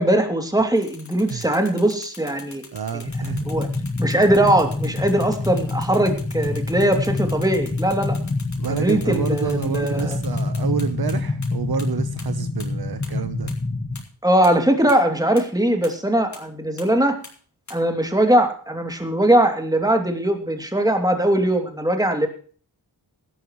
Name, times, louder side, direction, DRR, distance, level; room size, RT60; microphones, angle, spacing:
voice 1, 0.0-2.6 3.5-3.7 4.0-8.2 8.7-10.2 14.2-17.2 17.7-22.3, right 1 dB, 10° right, 4 dB, 2.8 m, -20 dB
sound 1, 0.8-11.1 11.4-11.5 11.8-11.9 12.2-12.3 12.6-12.7 13.0-13.1 13.5-13.6 13.9-14.0 14.4-14.5 14.9-15.0 15.4-15.5 15.8-15.9 16.3-16.4 16.8-16.9 17.2-17.3 17.7-17.8, left 4 dB, 45° left, 3.9 m, -42 dB
voice 2, 2.7-3.5 8.6-13.5, right 7 dB, 60° right, 10 dB, 1.1 m, -28 dB
sound 2, 3.1-14.0, left 3 dB, 25° left, 1.7 m, -26 dB
18.0 x 12.5 x 3.2 m, 0.42 s
wide cardioid pair, 95°, 41 cm